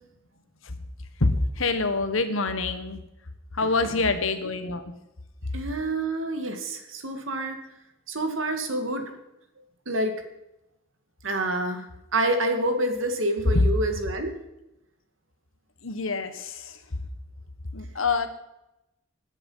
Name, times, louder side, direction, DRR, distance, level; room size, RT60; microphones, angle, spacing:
voice 1, 1.2-3.0 3.5-4.9 13.5-13.6 15.8-16.8 17.7-18.3, left 3 dB, 90° left, 9 dB, 1.5 m, -26 dB
voice 2, 3.6-4.0 5.5-7.6 8.1-9.0 9.9-10.2 11.2-14.3, right 1 dB, 75° right, 6 dB, 2.1 m, -28 dB
18.5 x 10.0 x 5.7 m, 0.91 s
head